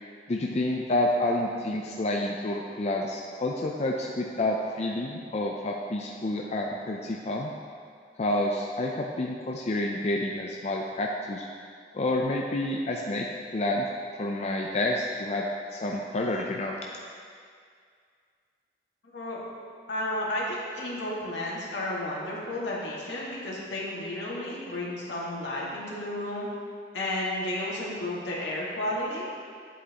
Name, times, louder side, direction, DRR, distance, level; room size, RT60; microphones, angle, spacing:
voice 1, 0.3-7.5 8.2-11.5 11.9-13.9 14.2-15.5 15.7-16.8, left 1 dB, 40° left, -1 dB, 0.5 m, -29 dB
voice 2, 19.9-26.5 26.9-29.3, left 1 dB, 80° left, -5 dB, 1.9 m, -32 dB
9.8 x 8.1 x 2.9 m, 2.2 s
head